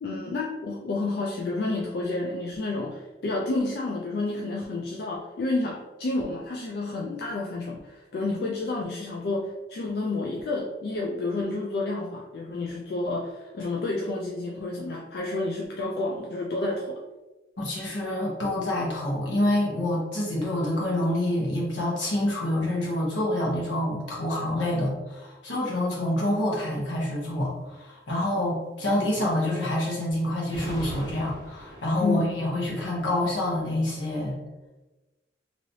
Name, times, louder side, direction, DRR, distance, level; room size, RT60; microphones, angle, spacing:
voice 1, 0.0-17.0 32.0-32.5, left 2 dB, 55° left, -2 dB, 0.3 m, -30 dB
voice 2, 17.6-34.4, left 1 dB, 80° left, -4 dB, 1.1 m, -27 dB
sound 1, 30.4-33.7, equal, 20° left, 1.0 m, -41 dB
3.0 x 2.8 x 2.7 m, 1.1 s
head